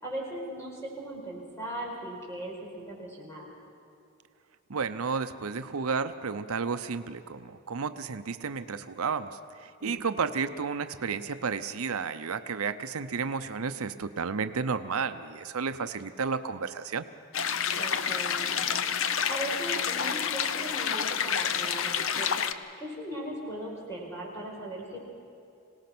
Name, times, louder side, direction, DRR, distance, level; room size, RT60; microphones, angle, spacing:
voice 1, 0.0-3.5 9.8-10.0 17.7-22.5 22.8-25.0, right 1 dB, 15° left, -2 dB, 4.7 m, -39 dB
voice 2, 4.7-17.1, right 5 dB, 75° right, 10 dB, 0.7 m, -32 dB
sound 1, 17.3-22.5, left 7 dB, 65° left, 0.7 m, -29 dB
25.5 x 18.0 x 6.1 m, 2.6 s
head